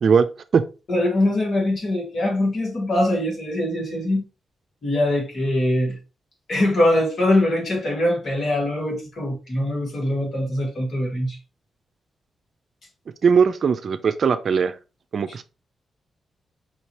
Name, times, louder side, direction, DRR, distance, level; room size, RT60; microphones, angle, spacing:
voice 1, 0.9-4.2 4.8-6.0 6.5-11.4, left 1 dB, 60° left, 2.2 m, -22 dB
voice 2, 13.2-14.7 15.1-15.4, right 6 dB, 60° right, 0.5 m, -19 dB
5.3 x 2.8 x 3.0 m
cardioid pair, 70°, 0 cm